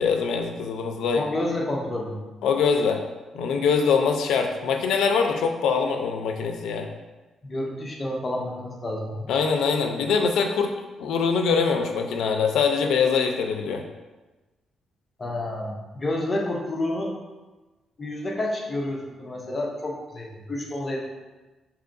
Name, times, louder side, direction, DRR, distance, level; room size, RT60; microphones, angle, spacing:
voice 1, 0.0-1.2 2.4-3.0 3.3-6.9 9.3-10.7 11.0-13.8, left 5 dB, 90° left, 4 dB, 0.4 m, -23 dB
voice 2, 1.1-2.2 7.4-9.3 15.2-17.1 18.0-21.1, left 1 dB, 20° left, -1 dB, 0.5 m, -29 dB
4.7 x 2.9 x 2.5 m, 1.2 s
cardioid pair, 175°, 0 cm